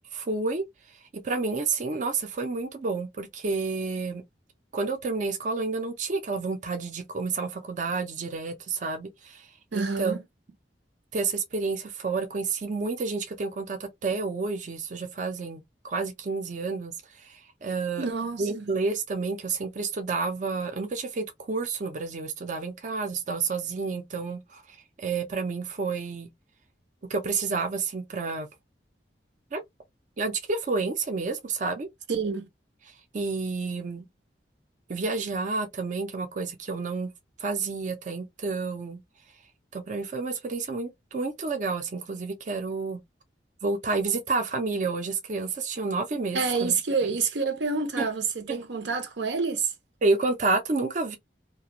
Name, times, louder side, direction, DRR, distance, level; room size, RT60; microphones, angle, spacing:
voice 1, 0.1-0.6 1.2-4.2 4.7-10.2 11.1-18.1 18.4-26.3 27.1-28.5 29.5-29.6 30.2-31.9 32.9-34.0 34.9-37.1 37.4-39.0 39.7-43.0 43.6-46.7 48.0-48.1 48.5-48.6 50.0-51.2, right 4 dB, 45° right, 0.5 m, -30 dB
voice 2, 9.7-10.2 18.0-18.7 32.1-32.5 46.3-49.7, right 4 dB, 90° right, 0.7 m, -28 dB
2.4 x 2.2 x 2.8 m
head